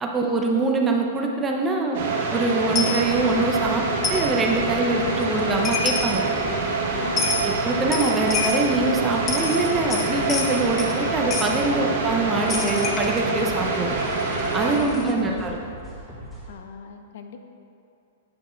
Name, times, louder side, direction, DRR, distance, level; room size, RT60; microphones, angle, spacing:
voice 1, 0.0-2.0 2.3-3.8 4.1-6.2 7.2-14.0 14.5-15.6, right 2 dB, 15° right, 1 dB, 0.8 m, -24 dB
sound 1, 1.9-14.8, right 3 dB, 60° right, 1.5 m, -26 dB
Coin (dropping), 2.7-3.0 4.0-4.3 5.4-5.5 5.6-6.2 7.2-7.5 7.9-8.7 9.1-11.0 11.3-11.5 12.5-15.1, left 4 dB, 25° left, 0.8 m, -28 dB
sound 2, 3.0-16.5, right 1 dB, 5° left, 1.6 m, -40 dB
voice 2, 7.0-7.4 14.8-15.4 16.5-17.5, left 6 dB, 65° left, 6 dB, 0.6 m, -39 dB
8.5 x 4.7 x 4.5 m, 2.6 s
hypercardioid pair, 145°, 0 cm